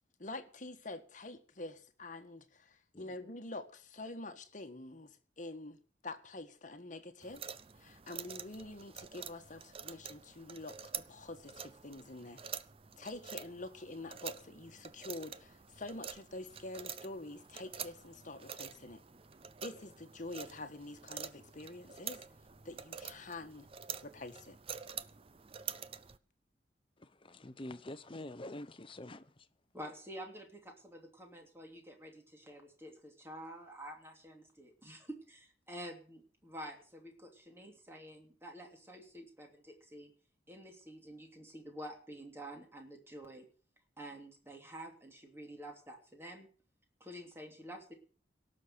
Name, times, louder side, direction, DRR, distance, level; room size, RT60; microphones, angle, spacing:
voice 1, 0.2-7.4 7.8-12.4 13.0-19.0 19.6-22.2 22.6-23.7 24.0-24.6, left 2 dB, 45° left, 8 dB, 1.6 m, -46 dB
sound 1, 7.2-26.2, right 8 dB, 30° right, 0.6 m, -47 dB
voice 2, 27.0-29.5, left 1 dB, 30° left, 12 dB, 0.8 m, -46 dB
voice 3, 29.7-40.1 40.5-43.4 44.0-46.5 47.0-47.9, equal, 15° right, 2 dB, 2.9 m, -49 dB
17.5 x 6.6 x 8.0 m, 0.42 s
head